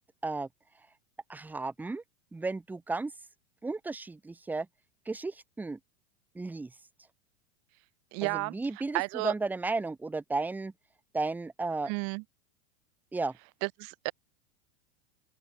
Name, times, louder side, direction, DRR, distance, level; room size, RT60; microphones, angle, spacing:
voice 1, 1.3-2.0 2.3-3.1 3.6-4.7 5.1-5.8 6.3-6.7 8.2-10.7 11.1-11.9 13.1-13.3, right 3 dB, 5° right, 0.5 m, -33 dB
voice 2, 8.1-8.5 8.9-9.3 11.9-12.2 13.6-14.1, right 36 dB, 45° right, 0.7 m, -32 dB
open air
hypercardioid pair, 105°, 35 cm